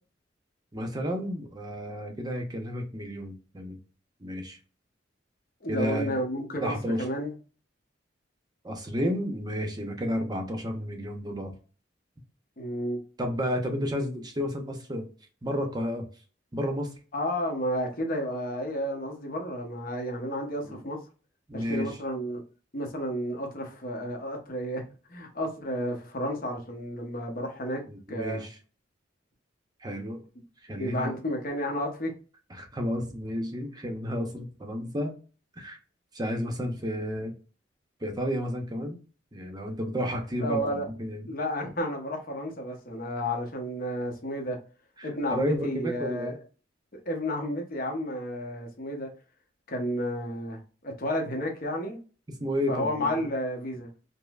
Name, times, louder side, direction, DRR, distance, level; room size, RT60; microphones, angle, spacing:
voice 1, 0.7-3.8 4.2-4.6 5.7-6.1 6.6-7.1 8.6-11.5 13.2-15.1 15.4-16.1 16.5-16.9 20.6-20.8 21.5-21.9 27.9-28.6 29.8-30.2 30.6-31.1 32.5-35.1 35.5-35.8 36.1-37.3 38.0-39.0 39.3-41.3 45.0-46.4 52.4-53.3, equal, 20° right, 0.7 m, -31 dB
voice 2, 5.6-7.3 12.6-13.0 17.1-21.0 21.5-22.4 22.7-24.8 25.1-27.8 28.1-28.5 30.8-32.1 40.4-40.8 41.3-44.6 45.0-46.3 46.9-49.1 49.7-52.0 52.7-53.9, equal, 50° left, 0.9 m, -31 dB
5.1 x 2.0 x 2.3 m
head